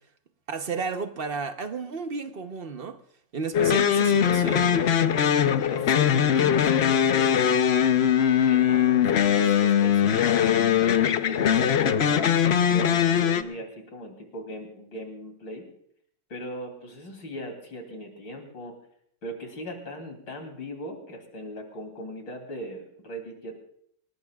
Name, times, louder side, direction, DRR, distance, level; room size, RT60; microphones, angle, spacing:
voice 1, 0.5-3.0 3.3-5.1, right 5 dB, 45° right, 0.8 m, -33 dB
sound 1, 3.5-13.4, left 9 dB, 70° left, 0.6 m, -21 dB
voice 2, 5.7-7.6 8.5-15.7 16.3-18.8 19.2-23.7, equal, 90° left, 3.8 m, -38 dB
28.5 x 18.0 x 2.4 m
omnidirectional pair, 2.0 m